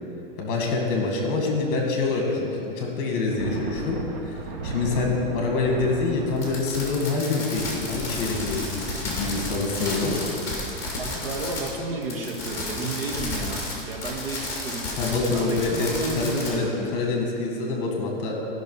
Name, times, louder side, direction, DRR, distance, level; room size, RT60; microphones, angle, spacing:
voice 1, 0.4-4.0 4.3-10.2 15.0-15.9 16.2-16.7 16.9-18.4, left 3 dB, 35° left, 1 dB, 1.9 m, -26 dB
sound 1, 3.2-6.5, right 3 dB, 20° right, 0.3 m, -34 dB
Fireworks, 6.4-11.8 12.0-16.5, left 2 dB, 10° left, 2.3 m, -32 dB
voice 2, 11.0-16.9, right 2 dB, 70° right, 1 dB, 1.7 m, -32 dB
14.0 x 6.0 x 5.6 m, 2.7 s
supercardioid pair, 160°, 30 cm